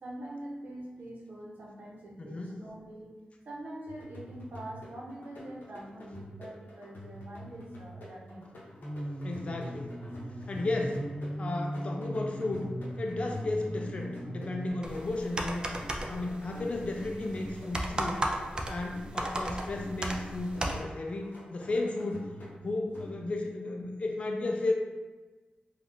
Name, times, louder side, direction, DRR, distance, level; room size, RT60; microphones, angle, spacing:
voice 1, 0.0-3.1 3.4-8.5 16.0-16.6, right 1 dB, 70° right, -4 dB, 0.8 m, -44 dB
voice 2, 2.2-2.6 9.2-9.9 10.5-11.0 11.4-12.7 13.0-15.7 16.1-18.2 18.7-22.3 22.6-24.7, left 2 dB, 40° left, 2 dB, 0.4 m, -34 dB
sound 1, 3.9-23.5, equal, 90° left, 0.6 m, -48 dB
sound 2, 8.8-14.7, equal, ahead, 0.8 m, -38 dB
sound 3, 14.8-20.8, right 1 dB, 30° right, 0.3 m, -36 dB
3.5 x 2.3 x 2.6 m, 1.2 s
wide cardioid pair, 85°, 3 cm